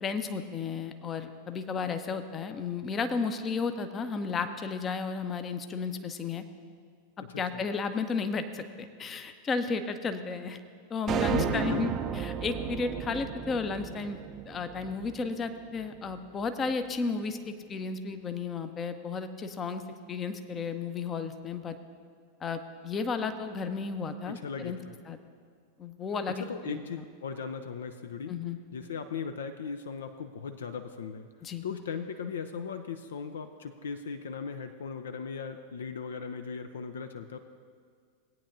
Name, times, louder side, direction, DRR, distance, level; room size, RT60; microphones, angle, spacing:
voice 1, 0.0-6.4 7.4-10.6 10.9-14.2 14.5-19.8 20.1-21.8 22.4-24.8 25.1-25.2 25.8-26.8 28.3-28.6 31.4-31.6, left 4 dB, 25° left, 9 dB, 0.7 m, -33 dB
voice 2, 7.3-7.6 11.3-12.1 24.2-24.9 26.3-28.3 28.7-31.3 31.6-37.4, left 5 dB, 65° left, 9 dB, 0.4 m, -38 dB
sound 1, 11.1-15.5, right 8 dB, 30° right, 0.5 m, -33 dB
18.0 x 9.1 x 2.6 m, 2.1 s
figure-of-eight pair, 90°, 0 cm